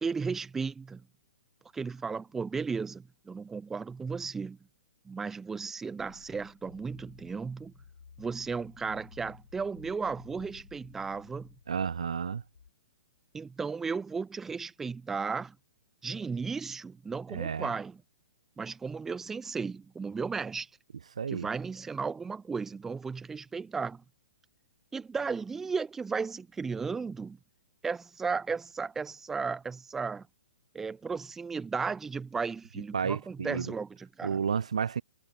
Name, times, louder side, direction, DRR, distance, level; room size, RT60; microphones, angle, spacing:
voice 1, 0.0-1.0 1.7-4.6 5.1-7.7 8.2-11.5 13.3-15.6 16.0-18.0 18.6-20.7 21.3-24.0 24.9-27.4 27.8-30.3 30.7-34.4, right 5 dB, 10° right, 0.5 m, -35 dB
sound 1, 6.0-12.7, left 6 dB, 65° left, 1.5 m, -55 dB
voice 2, 11.7-12.4 17.3-17.7 21.2-21.5 32.9-33.7 34.2-35.0, right 6 dB, 65° right, 0.4 m, -31 dB
figure-of-eight pair, 115°, 4 cm